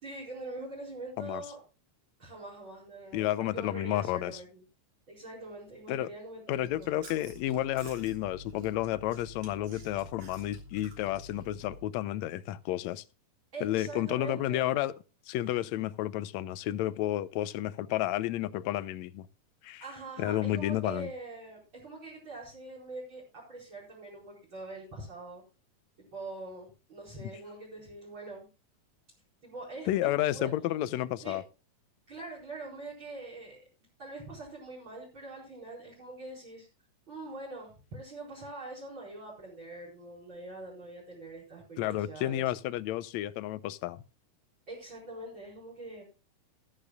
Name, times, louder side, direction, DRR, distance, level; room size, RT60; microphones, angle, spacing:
voice 1, 0.0-1.6 2.2-4.6 5.1-7.1 13.5-14.7 19.8-25.4 26.0-28.5 29.4-30.5 31.2-31.4 32.1-33.6 34.0-36.7 37.1-42.5 44.7-46.0, right 2 dB, 35° right, 5.3 m, -44 dB
voice 2, 3.1-4.4 5.9-6.1 6.5-13.0 13.6-14.9 15.3-19.3 19.6-19.8 20.2-21.1 27.2-27.3 29.9-31.4 41.8-44.0, left 14 dB, 75° left, 1.7 m, -31 dB
Chewing mastication, 6.5-11.8, left 1 dB, 60° right, 4.7 m, -49 dB
15.0 x 13.5 x 2.3 m
omnidirectional pair, 3.7 m